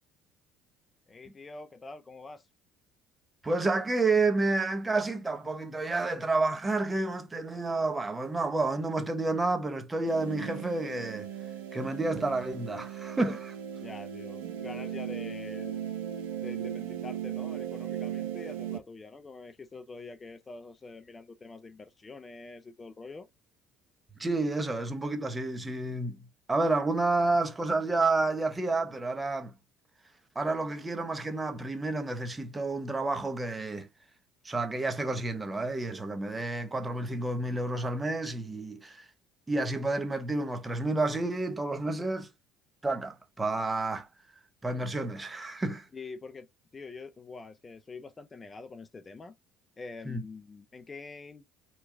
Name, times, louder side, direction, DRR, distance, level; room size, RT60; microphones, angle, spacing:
voice 1, 1.1-2.5 11.8-11.9 13.8-15.8 16.4-23.3 45.9-46.5 46.7-49.3 49.8-51.4, left 3 dB, 25° left, 0.5 m, -45 dB
voice 2, 3.4-11.3 11.7-13.6 24.2-29.5 30.3-33.9 34.4-39.1 39.5-42.3 42.8-44.1 44.6-45.9 50.1-50.2, right 2 dB, 20° right, 0.8 m, -30 dB
sound 1, 10.0-18.8, right 10 dB, 80° right, 0.5 m, -37 dB
3.0 x 2.3 x 3.6 m
hypercardioid pair, 60°, 0 cm